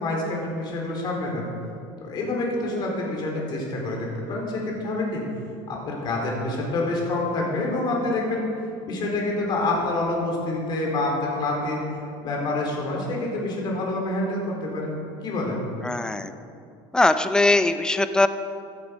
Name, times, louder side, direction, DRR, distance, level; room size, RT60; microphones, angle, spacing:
voice 1, 0.0-1.5 2.0-5.2 5.7-8.4 8.8-11.8 12.2-14.9 15.2-15.6, left 2 dB, 40° left, -1 dB, 4.2 m, -27 dB
voice 2, 15.8-16.3 16.9-18.3, left 2 dB, 5° left, 10 dB, 0.6 m, -20 dB
17.0 x 12.0 x 5.3 m, 2.5 s
cardioid pair, 145°, 12 cm